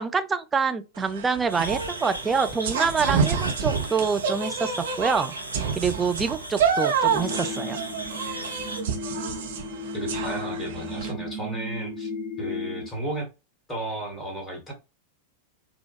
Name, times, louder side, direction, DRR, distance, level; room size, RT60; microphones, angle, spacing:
voice 1, 0.0-4.7 5.0-5.3 5.8-7.8, right 5 dB, 15° right, 0.5 m, -26 dB
sound 1, 1.0-11.1, right 6 dB, 60° right, 0.8 m, -28 dB
sound 2, 1.5-8.8, right 1 dB, 90° left, 0.5 m, -37 dB
sound 3, 7.1-12.9, left 1 dB, 35° left, 1.0 m, -34 dB
voice 2, 9.9-12.1 12.4-13.3 13.7-14.7, right 1 dB, 15° left, 1.9 m, -33 dB
4.1 x 2.3 x 3.2 m
figure-of-eight pair, 90°, 0 cm